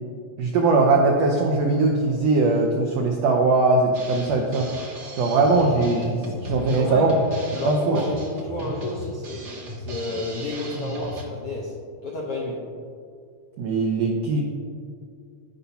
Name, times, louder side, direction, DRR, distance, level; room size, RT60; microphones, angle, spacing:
voice 1, 0.4-4.7 5.2-7.1 7.6-8.0 13.6-14.4, right 3 dB, 85° right, 1 dB, 1.4 m, -20 dB
Drum kit, 3.9-11.2, right 1 dB, 60° right, 1.0 m, -37 dB
voice 2, 6.7-7.1 7.5-9.5 9.8-11.8 12.0-12.7, left 2 dB, 75° left, -4 dB, 1.3 m, -31 dB
15.0 x 5.6 x 2.8 m, 2.3 s
omnidirectional pair, 3.9 m